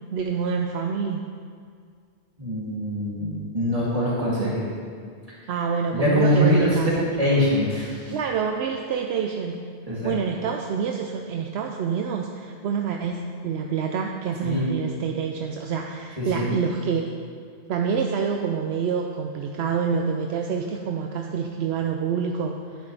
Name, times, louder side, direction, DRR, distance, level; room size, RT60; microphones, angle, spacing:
voice 1, 0.1-1.2 4.4-4.5 5.5-7.4 8.1-9.6 10.0-17.1 17.7-22.6, right 6 dB, 75° right, 3 dB, 0.8 m, -27 dB
voice 2, 2.4-4.6 5.9-8.2 9.9-10.2 14.4-14.7 16.2-16.5, equal, 35° right, -8 dB, 3.0 m, -23 dB
10.5 x 9.7 x 3.4 m, 2.1 s
omnidirectional pair, 1.1 m